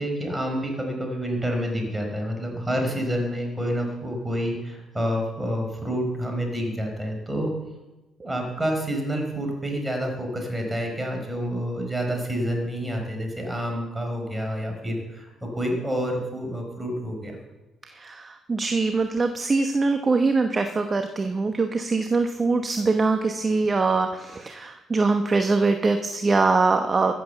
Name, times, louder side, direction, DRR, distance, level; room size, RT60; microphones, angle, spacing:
voice 1, 0.0-7.5 8.2-17.4, equal, 15° right, 3 dB, 4.8 m, -28 dB
voice 2, 17.8-27.1, right 3 dB, 35° right, 6 dB, 1.0 m, -23 dB
15.0 x 7.9 x 6.9 m, 1.1 s
supercardioid pair, 65°, 0 cm